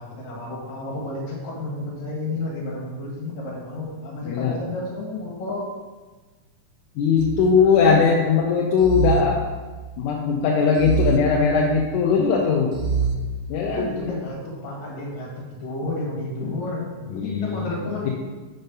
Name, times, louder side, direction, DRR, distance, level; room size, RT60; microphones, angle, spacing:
voice 1, 0.0-5.7 13.0-13.1 13.7-15.3 15.6-18.1, left 2 dB, 65° left, -3 dB, 3.1 m, -31 dB
voice 2, 4.3-4.6 7.0-9.4 10.0-12.8 13.5-13.9 16.4-16.5 17.1-17.7, left 5 dB, 80° left, -1 dB, 2.1 m, -20 dB
sound 1, 7.2-8.1 8.8-10.1 10.8-12.1 12.7-13.9, right 4 dB, 85° right, 2.3 m, -27 dB
6.7 x 5.5 x 5.3 m, 1.3 s
omnidirectional pair, 3.6 m